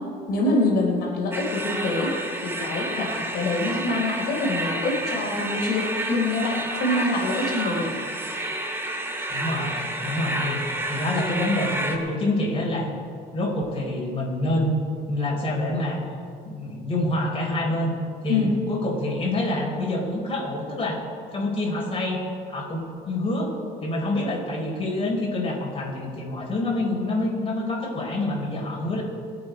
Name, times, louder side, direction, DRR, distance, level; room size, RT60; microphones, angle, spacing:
voice 1, 0.3-2.1 2.4-7.9 18.3-18.5, left 2 dB, 70° left, -2 dB, 3.9 m, -25 dB
sound 1, 1.3-12.0, right 1 dB, 15° right, 2.0 m, -30 dB
voice 2, 9.3-12.9 13.3-14.7 15.1-16.0 16.4-18.0 18.2-21.0 21.3-22.2 22.5-23.5 23.8-29.0, left 1 dB, 35° left, -2 dB, 4.6 m, -27 dB
23.5 x 8.2 x 5.3 m, 2.1 s
cardioid pair, 110°, 17 cm